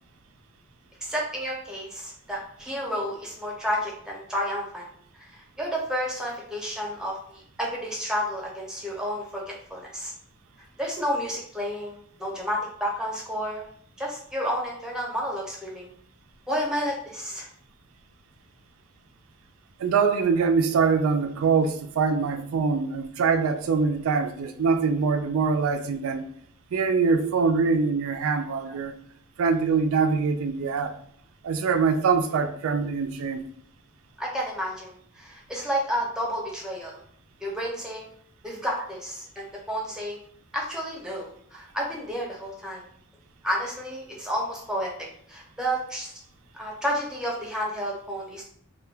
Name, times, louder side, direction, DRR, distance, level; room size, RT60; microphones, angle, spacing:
voice 1, 1.0-4.9 5.2-10.1 10.8-13.7 14.0-15.9 16.5-17.5 34.2-36.9 37.4-38.1 38.4-40.2 40.5-42.8 43.4-44.9 45.3-46.1 46.5-48.4, equal, 5° right, 0.7 m, -31 dB
voice 2, 19.8-26.2 26.7-28.9 29.4-31.0 31.4-33.4, right 5 dB, 75° right, 0.3 m, -23 dB
2.2 x 2.2 x 3.3 m
head